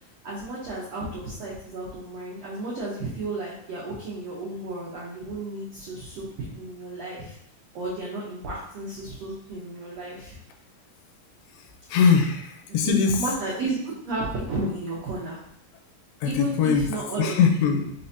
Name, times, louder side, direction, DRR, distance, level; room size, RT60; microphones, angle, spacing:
voice 1, 0.2-7.3 7.7-10.4 12.8-12.9 13.2-15.4 16.2-17.3, right 2 dB, 90° right, -6 dB, 1.4 m, -33 dB
voice 2, 11.9-13.2 16.2-16.9 17.2-17.9, left 6 dB, 85° left, 3 dB, 2.4 m, -21 dB
5.6 x 3.3 x 2.7 m, 0.73 s
omnidirectional pair, 4.2 m